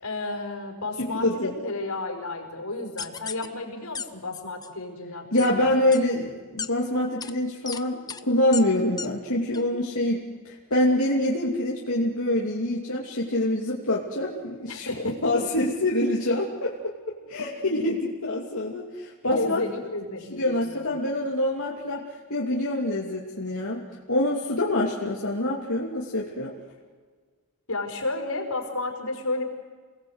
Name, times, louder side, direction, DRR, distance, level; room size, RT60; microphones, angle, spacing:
voice 1, 0.0-5.7 14.7-15.5 17.2-17.9 19.2-20.9 27.7-29.4, left 2 dB, 85° left, 2 dB, 5.4 m, -32 dB
voice 2, 1.0-1.5 5.3-19.9 20.3-22.0 22.3-26.5, left 1 dB, 65° left, -4 dB, 2.8 m, -26 dB
sound 1, 3.0-3.5 4.0-4.1 4.3-4.7 5.4-5.5 5.9-6.0 6.6-6.7 7.2-7.3 7.7-7.8 8.1-8.2 8.5-8.6 9.0-9.1 9.5-9.6, left 6 dB, 15° left, 0.8 m, -33 dB
28.5 x 20.0 x 8.1 m, 1.5 s
head